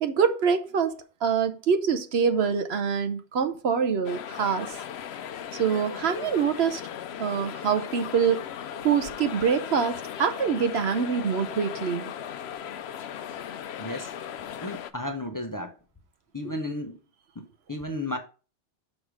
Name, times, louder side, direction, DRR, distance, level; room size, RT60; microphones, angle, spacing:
voice 1, 0.0-4.8 5.5-6.9 7.2-8.5 8.7-12.1 16.4-16.5, right 6 dB, 65° right, 1.0 m, -25 dB
sound 1, 4.0-14.9, left 9 dB, 70° left, 0.8 m, -37 dB
voice 2, 13.8-14.1 14.6-15.7 16.3-17.0 17.4-18.2, left 1 dB, 20° left, 0.7 m, -33 dB
6.3 x 4.9 x 5.0 m
omnidirectional pair, 1.2 m